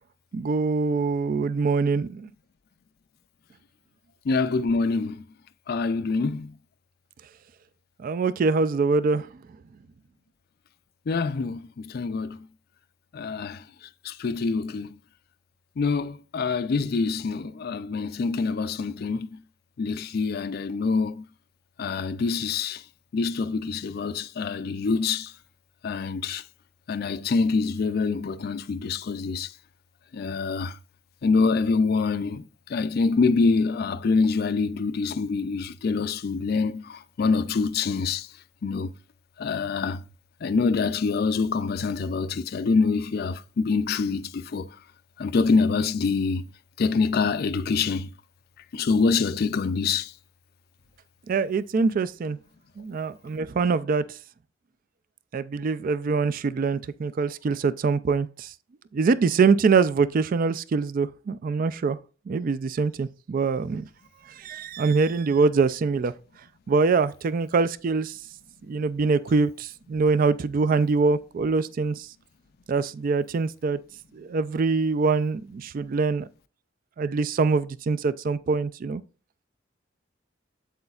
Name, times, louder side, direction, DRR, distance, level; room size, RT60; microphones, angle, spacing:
voice 1, 0.3-2.3 8.0-9.3 51.3-52.4 52.8-54.0 55.3-58.5 58.9-62.0 62.3-63.8 64.4-66.1 66.7-68.2 68.7-72.1 72.7-73.8 74.1-76.3 77.0-79.0, right 4 dB, 45° right, 0.3 m, -24 dB
voice 2, 4.3-5.2 5.7-6.5 11.1-12.4 13.1-13.6 14.0-14.9 15.8-19.4 19.8-21.2 21.8-22.8 23.1-25.3 25.8-26.4 26.9-29.5 30.1-30.8 31.2-32.4 32.7-38.3 38.6-38.9 39.4-40.0 40.4-44.7 45.2-46.5 46.8-48.1 48.7-50.1, left 4 dB, 50° left, 0.4 m, -25 dB
8.1 x 7.7 x 2.4 m
head